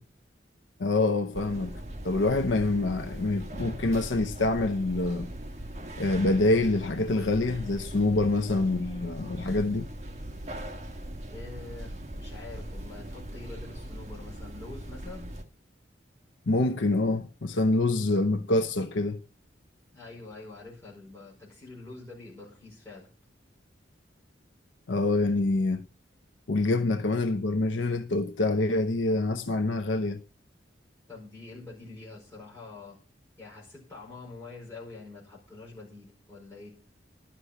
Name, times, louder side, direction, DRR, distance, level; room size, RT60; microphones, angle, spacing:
voice 1, 0.8-1.7 2.0-5.3 6.0-9.9 16.5-19.2 24.9-25.8 26.5-30.2, left 2 dB, 90° left, 0.8 m, -26 dB
sound 1, 1.3-15.4, right 1 dB, 35° right, 1.2 m, -40 dB
voice 2, 11.3-15.3 19.9-23.1 31.1-33.0 33.4-36.7, left 3 dB, 15° left, 4.9 m, -45 dB
11.5 x 6.0 x 8.0 m
head